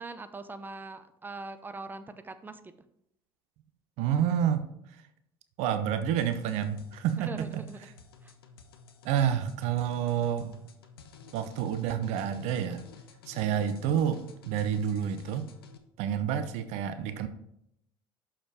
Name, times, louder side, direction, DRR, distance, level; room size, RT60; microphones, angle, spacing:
voice 1, 0.0-2.6 7.2-7.9 8.2-8.3, right 3 dB, 15° right, 10 dB, 0.7 m, -41 dB
voice 2, 4.0-4.7 5.6-7.6 9.0-10.6 11.3-12.8 13.3-15.5 16.0-17.3, right 9 dB, 60° right, 10 dB, 0.7 m, -29 dB
sound 1, 6.2-15.8, left 5 dB, 85° left, 0.7 m, -52 dB
6.5 x 5.6 x 4.9 m, 0.76 s
hypercardioid pair, 60°, 12 cm